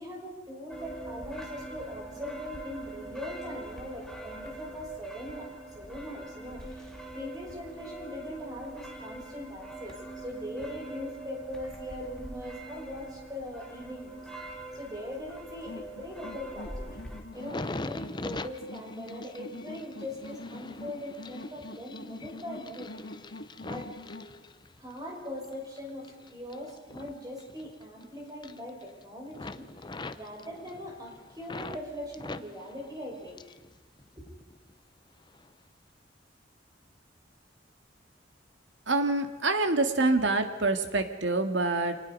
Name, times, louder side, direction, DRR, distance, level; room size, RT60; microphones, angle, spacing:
voice 1, 0.0-5.5 5.7-14.3 14.7-17.0 17.3-22.9 23.6-23.9 24.8-33.4 34.2-34.3, left 1 dB, 20° right, 0 dB, 5.7 m, -41 dB
sound 1, 0.7-17.2, right 2 dB, 5° left, 2.3 m, -43 dB
sound 2, 15.7-24.3, left 2 dB, 65° left, 1.7 m, -44 dB
sound 3, 17.3-25.0 25.4-28.0 28.3-29.0 29.3-31.8 32.1-33.7 34.0-34.7 35.3-35.5, left 2 dB, 25° left, 0.6 m, -43 dB
voice 2, 38.9-42.0, right 2 dB, 80° right, 7 dB, 1.9 m, -26 dB
26.5 x 20.0 x 5.4 m, 1.2 s
head